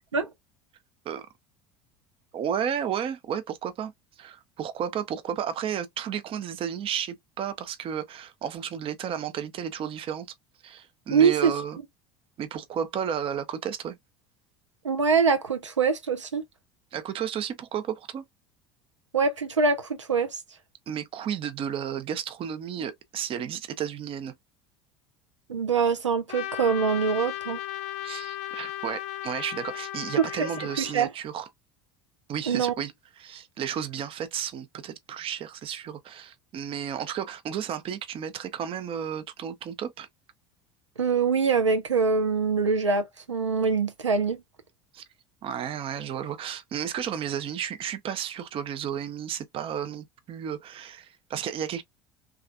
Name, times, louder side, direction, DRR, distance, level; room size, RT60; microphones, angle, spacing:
voice 1, 2.3-3.9 4.2-10.3 10.6-11.8 12.4-14.0 16.9-18.2 20.9-24.4 28.0-31.5 32.3-32.9 33.2-40.1 44.9-45.0 45.4-51.8, right 9 dB, 35° right, 0.6 m, -33 dB
voice 2, 11.1-11.5 14.8-16.4 19.1-20.4 25.5-27.6 30.2-30.5 30.8-31.1 32.5-32.7 41.0-44.4, right 5 dB, 85° right, 0.5 m, -24 dB
Trumpet, 26.3-31.0, left 14 dB, 50° left, 0.5 m, -36 dB
3.2 x 2.4 x 2.4 m
figure-of-eight pair, 70°, 15 cm